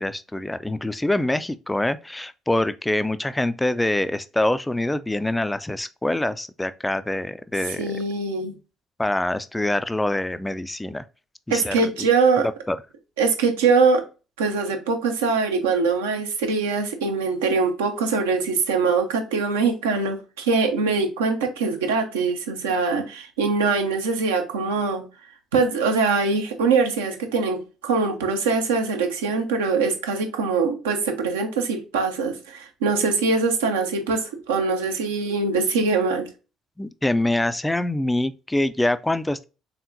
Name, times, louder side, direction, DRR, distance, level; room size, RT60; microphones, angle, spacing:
voice 1, 0.0-8.0 9.0-11.0 11.5-11.8 12.7-12.8 36.8-39.4, left 1 dB, 10° left, 0.3 m, -25 dB
voice 2, 7.7-8.5 11.5-12.5 13.2-14.0 14.4-25.0 25.5-36.3, right 4 dB, 75° right, 0.7 m, -23 dB
4.3 x 3.6 x 2.6 m
figure-of-eight pair, 50°, 0 cm